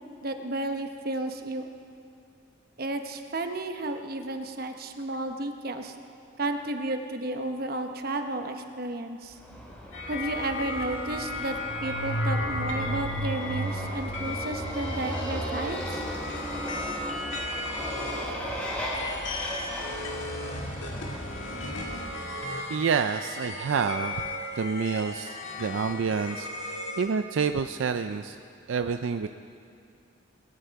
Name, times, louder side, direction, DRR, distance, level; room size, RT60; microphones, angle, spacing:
voice 1, 0.2-1.7 2.8-6.0 6.4-9.4 10.1-16.0, right 2 dB, 50° right, 6 dB, 0.9 m, -32 dB
Motorcycle, 9.4-22.1, right 1 dB, 5° left, 3.0 m, -35 dB
sound 1, 9.9-27.1, left 2 dB, 80° left, 1.8 m, -36 dB
voice 2, 22.7-28.4 28.7-29.3, right 5 dB, 80° right, 8 dB, 0.4 m, -28 dB
20.5 x 10.5 x 4.7 m, 2.4 s
head